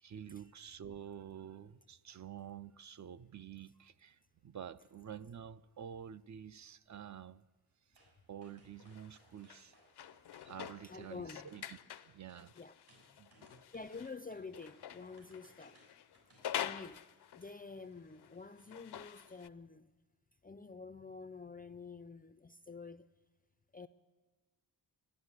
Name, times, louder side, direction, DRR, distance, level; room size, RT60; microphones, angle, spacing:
voice 1, 0.0-7.4 7.9-8.0 8.3-9.7 10.4-11.8 12.1-12.5 13.2-13.6, right 9 dB, 45° right, 0.5 m, -49 dB
sound 1, 8.0-8.1 8.4-11.2 11.5-12.5 12.9-17.0 17.4-17.5, right 1 dB, 70° right, 6.7 m, -66 dB
sound 2, 8.8-14.1 14.5-17.7 18.1-19.5, left 10 dB, 65° left, 0.6 m, -46 dB
voice 2, 10.8-11.5 12.6-12.7 13.7-15.8 16.5-17.1 17.4-19.9 20.4-23.1 23.7-23.9, left 4 dB, 20° left, 0.4 m, -48 dB
13.5 x 11.0 x 9.6 m
wide cardioid pair, 90°, 42 cm